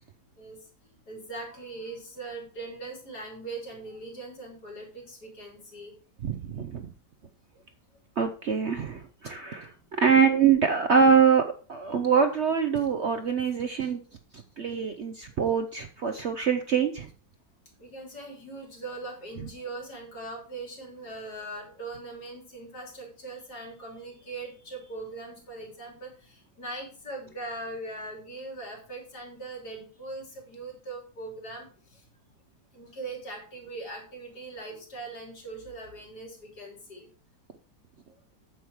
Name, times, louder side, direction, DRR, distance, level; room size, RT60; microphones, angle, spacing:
voice 1, 1.1-5.9 7.5-7.6 17.8-32.1 32.7-37.1 38.1-38.2, right 2 dB, 65° left, 0 dB, 3.8 m, -40 dB
voice 2, 6.2-6.9 8.2-11.4 11.7-14.0 14.6-17.1, right 6 dB, 55° right, 7 dB, 0.8 m, -24 dB
9.2 x 7.3 x 4.7 m, 0.39 s
omnidirectional pair, 1.9 m